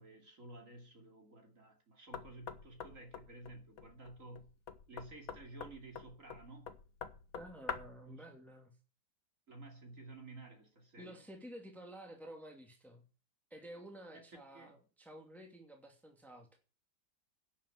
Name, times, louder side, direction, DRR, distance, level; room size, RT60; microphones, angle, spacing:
voice 1, 0.0-4.5 4.9-6.7 8.0-8.3 9.5-11.2 14.1-14.2 14.5-14.7, right 2 dB, 40° right, 3.0 m, -53 dB
Knock, 2.1-8.1, left 6 dB, 50° left, 1.5 m, -47 dB
voice 2, 7.3-8.8 11.0-13.0 13.5-16.6, right 1 dB, ahead, 2.4 m, -52 dB
11.0 x 7.4 x 8.5 m
omnidirectional pair, 2.1 m